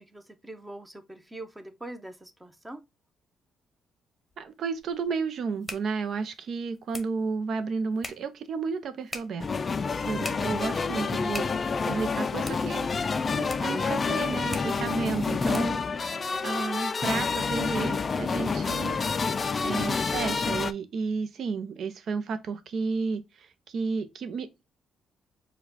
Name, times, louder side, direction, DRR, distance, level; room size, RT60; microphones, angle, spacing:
voice 1, 0.0-2.8, right 1 dB, 10° right, 0.8 m, -43 dB
sound 1, 4.3-15.9, left 2 dB, 20° left, 0.9 m, -45 dB
voice 2, 4.4-9.5 10.0-12.9 13.4-24.6, right 5 dB, 60° right, 0.6 m, -32 dB
sound 2, 9.4-20.7, left 5 dB, 35° left, 0.3 m, -28 dB
4.7 x 2.3 x 3.9 m
cardioid pair, 90°, 0 cm